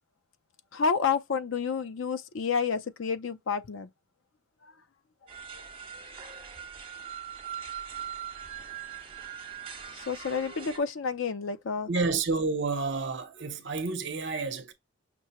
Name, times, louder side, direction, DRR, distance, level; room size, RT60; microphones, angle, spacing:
voice 1, 0.7-3.9 10.1-11.9, left 5 dB, 65° left, 0.5 m, -29 dB
sound 1, 5.3-10.8, right 8 dB, 25° right, 1.1 m, -41 dB
voice 2, 11.9-14.7, right 4 dB, 55° right, 0.8 m, -30 dB
6.0 x 2.1 x 2.9 m
head